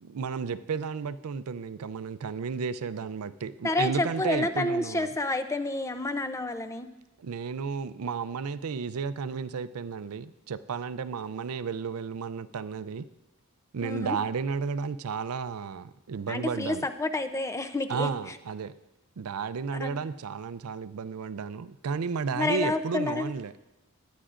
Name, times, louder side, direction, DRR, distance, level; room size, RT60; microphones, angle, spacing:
voice 1, 0.0-5.1 7.2-13.1 13.7-16.9 17.9-18.7 19.2-23.5, right 5 dB, 80° right, 14 dB, 0.4 m, -33 dB
voice 2, 3.6-6.9 13.8-14.2 16.3-18.1 19.8-20.0 22.3-23.3, left 2 dB, 15° left, 10 dB, 0.5 m, -29 dB
21.0 x 9.0 x 2.5 m, 1.0 s
head